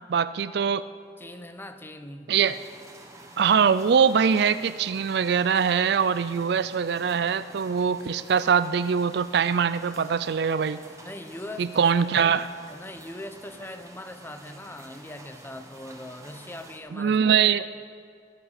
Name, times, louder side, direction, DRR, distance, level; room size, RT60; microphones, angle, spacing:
voice 1, 0.1-0.9 2.3-2.6 3.4-10.8 11.6-12.5 16.9-17.7, right 7 dB, 65° right, 15 dB, 0.4 m, -23 dB
voice 2, 1.2-2.3 11.0-11.8 12.1-12.4 12.7-17.3, left 1 dB, 15° left, 8 dB, 0.7 m, -40 dB
sound 1, 2.4-16.8, right 2 dB, 20° right, 1.4 m, -49 dB
17.5 x 7.4 x 6.6 m, 2.3 s
head